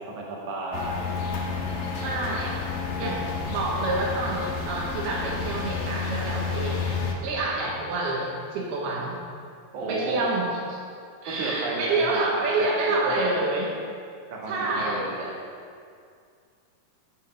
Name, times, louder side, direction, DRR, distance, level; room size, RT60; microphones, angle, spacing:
voice 1, 0.1-1.1 9.7-10.2 11.3-13.4 14.3-15.2, right 2 dB, 55° right, -4 dB, 3.0 m, -33 dB
sound 1, 0.7-7.1, left 5 dB, 85° left, 1.3 m, -30 dB
voice 2, 2.0-2.6 3.0-9.2 9.9-10.8 11.2-13.7 14.5-15.4, right 2 dB, 80° right, -3 dB, 3.1 m, -28 dB
13.5 x 4.9 x 7.4 m, 2.2 s
omnidirectional pair, 4.5 m